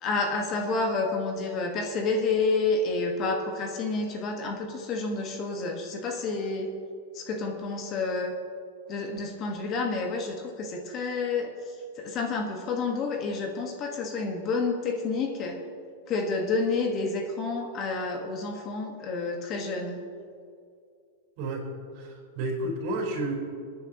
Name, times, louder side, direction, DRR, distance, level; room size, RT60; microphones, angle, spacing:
voice 1, 0.0-6.7 7.1-8.3 8.9-15.6 16.1-20.0, left 3 dB, 30° left, 3 dB, 1.5 m, -29 dB
voice 2, 21.9-23.3, right 1 dB, 50° right, -1 dB, 4.2 m, -31 dB
28.5 x 9.9 x 3.0 m, 2.3 s
supercardioid pair, 150°, 0 cm